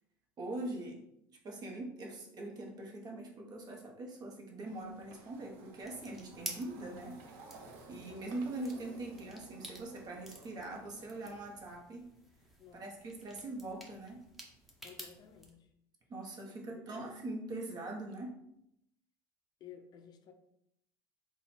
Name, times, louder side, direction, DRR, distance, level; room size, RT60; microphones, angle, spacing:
voice 1, 0.4-1.0 1.3-7.2 7.9-12.1 12.7-14.3 16.1-18.3, right 2 dB, 35° right, 0 dB, 1.0 m, -42 dB
sound 1, 4.6-11.7, right 3 dB, 75° right, 0.8 m, -55 dB
sound 2, 5.8-15.5, equal, ahead, 0.8 m, -51 dB
voice 2, 14.8-15.7 16.5-17.1 19.6-20.3, left 8 dB, 40° left, 5 dB, 0.5 m, -54 dB
3.7 x 2.3 x 4.3 m, 0.78 s
supercardioid pair, 110°, 11 cm